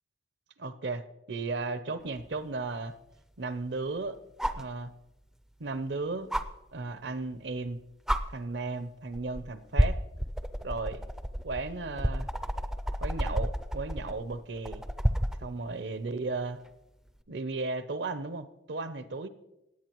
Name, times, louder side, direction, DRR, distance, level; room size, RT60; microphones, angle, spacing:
voice 1, 0.6-2.9 3.4-4.2 4.5-4.9 5.6-6.3 6.7-7.8 8.3-10.0 10.6-11.0 11.4-12.3 13.0-14.8 15.4-16.6 17.3-19.3, right 3 dB, 70° right, 12 dB, 0.7 m, -35 dB
sound 1, 2.2-2.3 4.4-4.7 6.3-6.4 7.6-7.7 8.1-8.2 9.1-9.4 9.8-15.4 17.1-17.2, equal, ahead, 0.4 m, -30 dB
18.0 x 8.7 x 3.0 m, 0.90 s
head